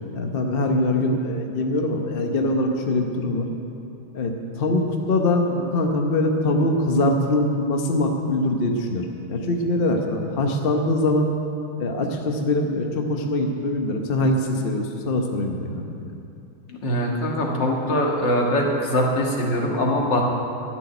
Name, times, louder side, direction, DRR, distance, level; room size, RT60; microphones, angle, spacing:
voice 1, 0.1-3.4 4.1-4.8 5.1-11.3 11.8-16.1, left 1 dB, 40° left, 2 dB, 0.8 m, -23 dB
voice 2, 16.7-20.2, equal, 60° left, -1 dB, 2.3 m, -22 dB
12.0 x 6.9 x 9.8 m, 2.6 s
omnidirectional pair, 2.2 m